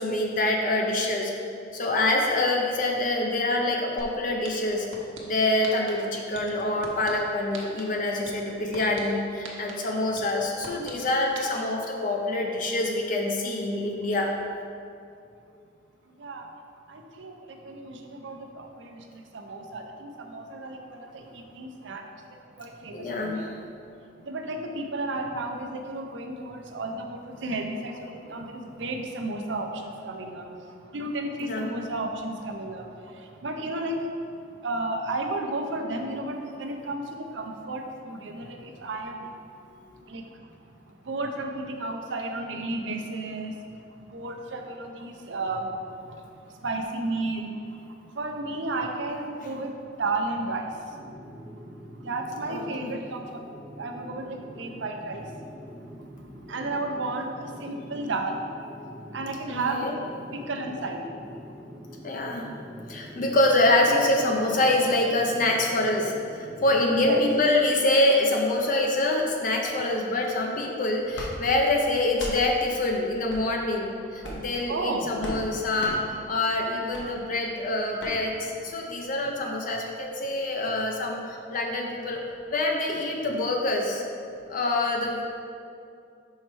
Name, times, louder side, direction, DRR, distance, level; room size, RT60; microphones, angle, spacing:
voice 1, 0.0-1.3 1.7-4.9 5.2-14.3 22.9-23.5 31.4-31.8 52.5-52.9 59.5-59.9 62.0-62.5 62.9-82.2 82.5-84.0 84.5-85.3, left 2 dB, 45° left, 1 dB, 0.5 m, -25 dB
sound 1, 4.0-4.1 4.4-5.2 5.6-5.9 6.3-7.1 7.5-7.8 8.2-9.0 9.4-9.7 10.1-10.9 11.3-11.4, right 5 dB, 90° right, 0.9 m, -40 dB
voice 2, 16.9-22.0 22.6-23.5 24.2-30.5 30.9-32.9 33.1-34.1 34.6-39.3 40.1-40.2 41.0-43.5 44.1-47.5 48.1-49.7 50.0-51.0 52.0-53.2 53.8-55.3 56.5-58.5 59.1-60.0 60.3-61.0 67.0-67.2 74.7-75.1, right 2 dB, 75° right, 3 dB, 0.6 m, -33 dB
sound 2, 50.9-67.2, equal, 15° right, 0.8 m, -44 dB
sound 3, 71.1-71.3 72.1-72.4 73.3-73.5 74.2-74.5 75.2-75.4 75.8-76.0 76.9-77.1 78.0-78.1, equal, 70° left, 1.2 m, -36 dB
5.6 x 4.2 x 4.7 m, 2.5 s
head